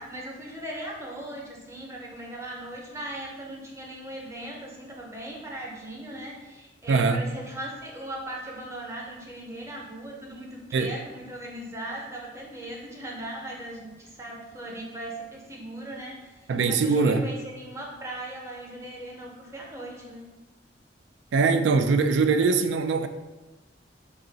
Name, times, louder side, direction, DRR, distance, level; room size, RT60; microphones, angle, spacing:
voice 1, 0.0-20.3, right 1 dB, 15° right, 0.6 m, -38 dB
voice 2, 6.9-7.3 10.7-11.0 16.5-17.3 21.3-23.1, right 4 dB, 75° right, 0.3 m, -22 dB
3.8 x 2.3 x 3.9 m
head